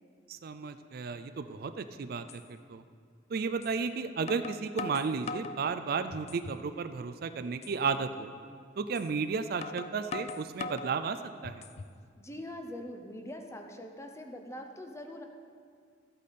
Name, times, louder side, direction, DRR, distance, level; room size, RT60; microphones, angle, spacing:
voice 1, 0.3-2.4 2.7-2.8 3.3-8.3 8.8-11.6, right 5 dB, 55° right, 10 dB, 0.4 m, -33 dB
sound 1, 1.7-1.8 2.3-2.4 3.6-3.8 4.3-5.6 6.1-6.6 7.0-7.1 7.6-7.8 8.9-9.1 9.6-10.9 11.4-12.0, left 4 dB, 35° left, 0.3 m, -40 dB
voice 2, 12.2-15.2, left 1 dB, 15° left, 4 dB, 0.8 m, -43 dB
13.0 x 8.3 x 4.2 m, 2.1 s
head